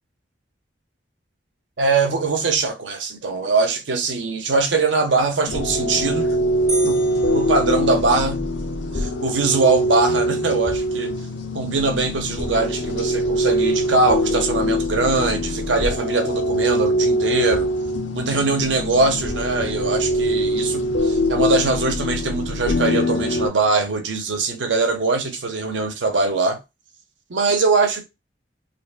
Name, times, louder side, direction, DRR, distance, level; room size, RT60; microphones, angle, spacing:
voice 1, 1.8-6.3 6.8-8.4 8.9-11.1 11.5-17.7 18.1-26.6 27.3-28.1, right 3 dB, 85° right, 0.7 m, -22 dB
sound 1, 5.5-23.5, equal, 90° left, 0.7 m, -23 dB
sound 2, 6.7-8.5, right 2 dB, ahead, 0.9 m, -33 dB
5.2 x 2.2 x 2.3 m
head